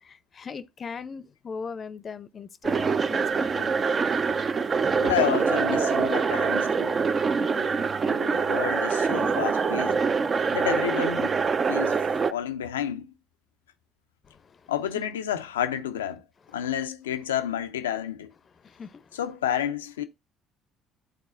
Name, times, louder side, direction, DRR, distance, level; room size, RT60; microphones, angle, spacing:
voice 1, 0.0-3.8 7.4-7.8 14.2-15.0 18.6-19.2, left 5 dB, 40° left, 0.6 m, -40 dB
sound 1, 2.6-12.3, right 5 dB, 40° right, 0.5 m, -24 dB
voice 2, 5.0-7.0 8.1-10.0 10.5-11.3 11.7-12.0 12.3-13.1 14.7-16.2 16.5-18.3 19.1-20.0, left 10 dB, 85° left, 0.5 m, -30 dB
11.5 x 4.0 x 2.5 m
hypercardioid pair, 55°, 0 cm